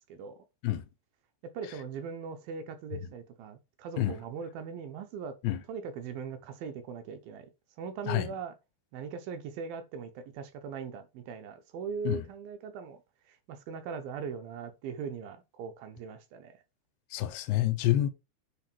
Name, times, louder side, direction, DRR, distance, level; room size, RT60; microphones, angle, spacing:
voice 1, 0.1-0.4 1.4-5.4 5.7-7.5 7.8-8.5 8.9-13.0 13.3-16.5, right 6 dB, 75° right, 2.6 m, -40 dB
voice 2, 17.1-18.1, left 14 dB, 85° left, 2.9 m, -28 dB
9.8 x 4.2 x 4.5 m
omnidirectional pair, 4.6 m